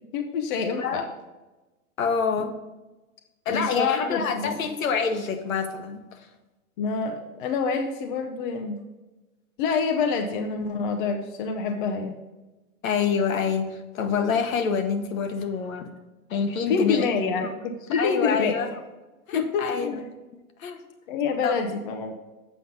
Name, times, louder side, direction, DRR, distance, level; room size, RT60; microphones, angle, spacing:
voice 1, 0.1-1.0 3.5-4.6 6.8-8.8 9.6-12.2 16.7-18.6 19.3-20.1 21.1-22.1, left 5 dB, 35° left, 4 dB, 0.7 m, -27 dB
voice 2, 2.0-2.5 3.4-6.3 12.8-15.9 16.3-17.1 17.4-17.5 17.9-18.8 19.3-20.0 20.6-20.8 21.4-21.6, left 6 dB, 65° left, 7 dB, 1.2 m, -27 dB
7.8 x 5.2 x 5.3 m, 1.1 s
hypercardioid pair, 140°, 43 cm